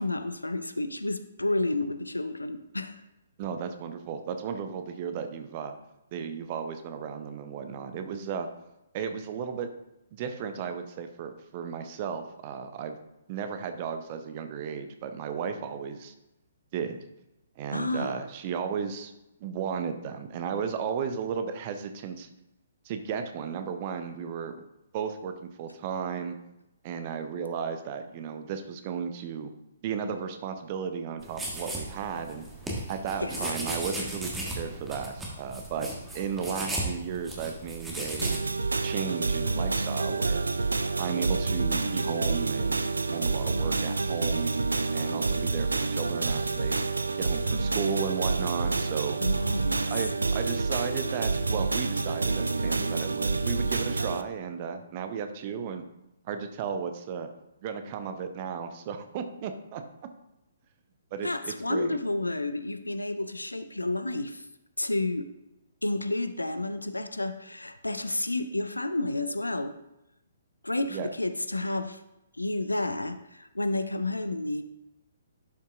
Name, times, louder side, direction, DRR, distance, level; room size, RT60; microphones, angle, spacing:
voice 1, 0.0-3.0 17.7-18.2 33.2-33.5 49.2-49.9 61.2-64.5 64.8-65.3 65.8-69.8 70.6-72.0 72.4-74.6, left 2 dB, 80° left, 10 dB, 0.5 m, -30 dB
voice 2, 3.4-5.7 6.1-8.5 8.9-9.7 10.1-13.0 13.3-16.1 16.7-17.0 17.6-19.1 19.4-22.3 22.8-24.6 24.9-26.4 26.8-29.5 29.8-32.4 32.9-34.3 34.6-35.9 36.1-38.4 38.8-40.5 41.0-44.5 44.9-46.9 47.2-49.2 49.9-55.8 56.2-57.3 57.6-59.8 61.1-62.0 70.9-71.1, right 7 dB, 35° right, 8 dB, 0.6 m, -34 dB
sound 1, 31.2-38.4, right 1 dB, 10° right, 1.4 m, -36 dB
sound 2, 38.2-54.2, right 3 dB, 70° right, 0.4 m, -28 dB
11.5 x 5.4 x 2.5 m, 0.90 s
figure-of-eight pair, 125°, 0 cm